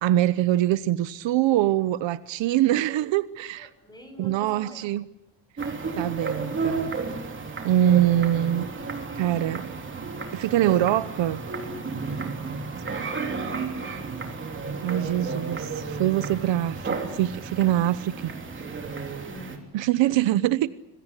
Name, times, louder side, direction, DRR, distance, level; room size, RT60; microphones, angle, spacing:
voice 1, 0.0-3.7 4.2-5.0 6.0-6.9 7.6-8.7 9.2-9.6 10.3-11.4 14.8-18.3 19.7-20.7, right 13 dB, 70° right, 1.0 m, -23 dB
voice 2, 3.6-5.0 13.0-14.9 18.9-19.7 20.1-20.3, left 1 dB, 10° left, 5.4 m, -46 dB
sound 1, 5.6-19.6, right 4 dB, 25° right, 3.2 m, -32 dB
26.5 x 21.5 x 8.3 m
cardioid pair, 175°, 46 cm